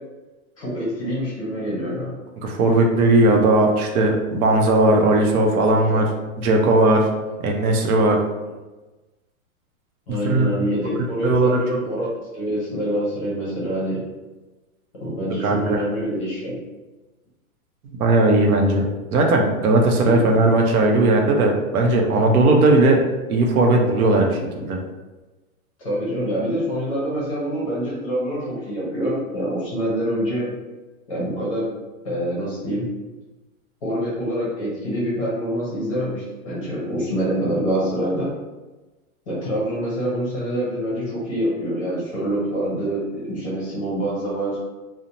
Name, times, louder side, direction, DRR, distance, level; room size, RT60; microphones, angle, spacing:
voice 1, 0.6-2.1 5.9-6.1 8.4-8.5 10.1-14.0 15.0-16.6 20.0-20.2 25.8-30.5 31.1-31.7 32.0-32.9 33.8-38.3 39.3-44.6, equal, 25° left, -7 dB, 0.6 m, -26 dB
voice 2, 2.4-6.0 6.4-7.1 7.4-8.2 10.1-10.5 11.0-11.6 15.4-15.8 18.0-18.8 19.1-24.8, right 2 dB, 85° right, 1 dB, 0.7 m, -18 dB
2.6 x 2.1 x 2.8 m, 1.2 s
supercardioid pair, 175°, 43 cm